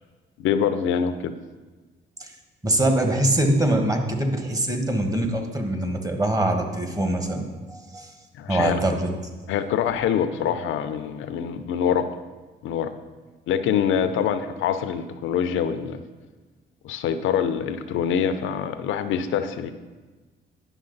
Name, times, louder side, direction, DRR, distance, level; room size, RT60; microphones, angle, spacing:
voice 1, 0.4-1.3 8.3-8.8 9.5-12.2 12.6-12.9 13.5-16.0 16.8-19.7, left 8 dB, 85° left, 11 dB, 0.6 m, -25 dB
voice 2, 2.6-8.1 8.5-9.1, right 1 dB, 15° right, 4 dB, 1.3 m, -23 dB
9.8 x 6.1 x 3.9 m, 1.3 s
cardioid pair, 90°, 20 cm